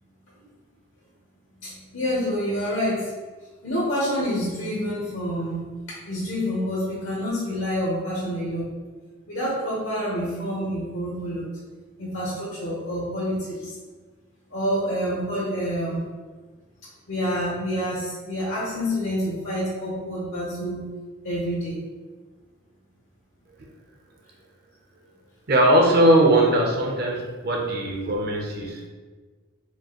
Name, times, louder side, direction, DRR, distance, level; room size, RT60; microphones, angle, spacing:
voice 1, 1.6-3.1 3.6-5.7 6.1-8.7 9.3-11.5 12.0-13.7 14.5-16.0 17.1-20.9 21.2-21.8, equal, 70° left, -7 dB, 1.0 m, -27 dB
voice 2, 25.5-28.8, right 1 dB, 45° right, 0 dB, 0.6 m, -20 dB
4.4 x 2.6 x 2.9 m, 1.4 s
head